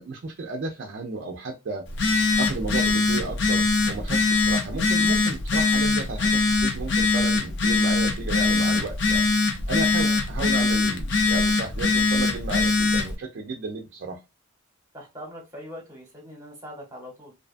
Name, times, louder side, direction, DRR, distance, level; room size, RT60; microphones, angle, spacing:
voice 1, 0.0-1.9 2.4-14.2, right 3 dB, 55° right, 0.4 m, -33 dB
Telephone, 1.9-13.1, left 3 dB, 60° left, 0.5 m, -22 dB
voice 2, 14.9-17.3, equal, 15° right, 0.9 m, -42 dB
2.6 x 2.2 x 2.5 m
head